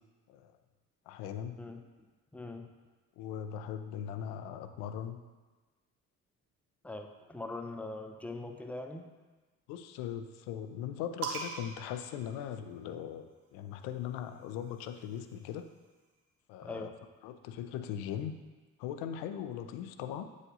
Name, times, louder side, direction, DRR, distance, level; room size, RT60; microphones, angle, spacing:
voice 1, 1.1-1.6 3.2-5.2 9.7-15.7 16.5-16.9 17.2-18.4 18.8-20.2, left 9 dB, 60° left, 9 dB, 0.6 m, -39 dB
voice 2, 2.3-2.7 6.8-9.0 16.6-16.9, left 2 dB, 5° left, 5 dB, 0.5 m, -41 dB
sound 1, 11.2-13.0 14.1-15.8, right 5 dB, 80° right, 0.8 m, -43 dB
8.5 x 4.8 x 2.7 m, 1.3 s
figure-of-eight pair, 45°, 43 cm